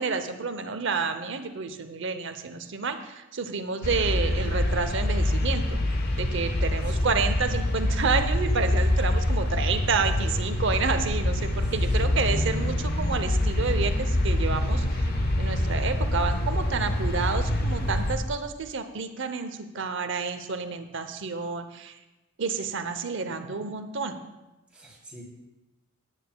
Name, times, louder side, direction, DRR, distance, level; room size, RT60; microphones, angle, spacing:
voice 1, 0.0-5.8 6.2-22.0 22.4-24.2, right 4 dB, 60° right, 9 dB, 0.7 m, -30 dB
sound 1, 3.8-18.2, left 1 dB, 45° left, 1.0 m, -25 dB
voice 2, 6.9-7.2 11.9-12.9 24.7-25.2, equal, 5° right, -7 dB, 3.1 m, -43 dB
16.5 x 9.9 x 2.3 m, 1.0 s
head